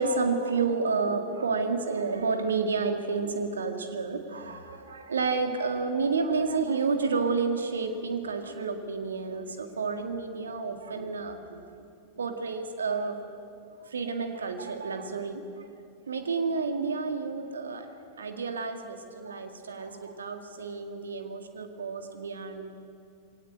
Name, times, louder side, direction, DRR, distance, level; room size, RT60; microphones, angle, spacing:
voice 1, 0.0-11.6 12.1-13.3 13.8-15.7 16.1-22.7, right 4 dB, 70° right, 6 dB, 2.0 m, -30 dB
22.0 x 18.0 x 8.6 m, 2.5 s
figure-of-eight pair, 90°, 0 cm